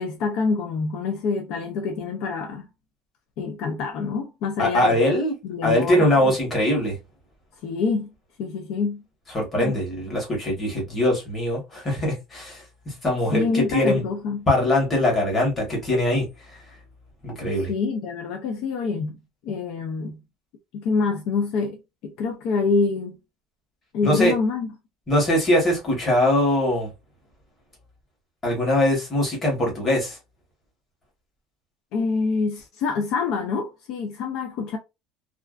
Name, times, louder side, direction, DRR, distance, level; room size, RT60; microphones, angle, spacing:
voice 1, 0.0-2.7 3.4-5.0 5.4-6.4 7.6-8.1 8.4-9.0 9.6-9.8 13.3-14.5 17.7-19.2 19.4-20.2 20.7-21.8 22.0-23.2 23.9-24.7 31.9-34.8, left 4 dB, 60° left, 0.4 m, -26 dB
voice 2, 4.6-5.3 5.6-7.0 9.3-12.6 13.0-14.0 14.5-16.3 17.2-17.7 24.0-24.3 25.1-26.9 28.4-30.2, left 1 dB, 20° left, 1.1 m, -22 dB
2.4 x 2.2 x 2.3 m
cardioid pair, 170°, 0 cm